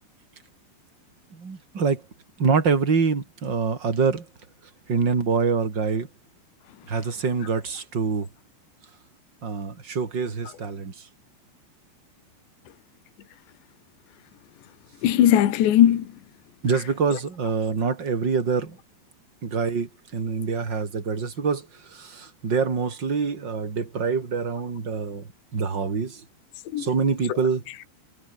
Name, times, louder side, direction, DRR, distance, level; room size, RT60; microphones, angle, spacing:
voice 1, 1.3-2.0 2.4-4.3 4.9-6.1 6.9-8.3 9.4-10.9 16.6-18.8 19.4-21.7 21.9-25.2 25.5-26.2 26.8-27.6, right 5 dB, 25° right, 3.5 m, -25 dB
voice 2, 15.0-16.2 16.7-17.2 26.7-26.9 27.3-27.4 27.7-27.8, left 11 dB, 75° left, 4.3 m, -21 dB
omnidirectional pair, 5.3 m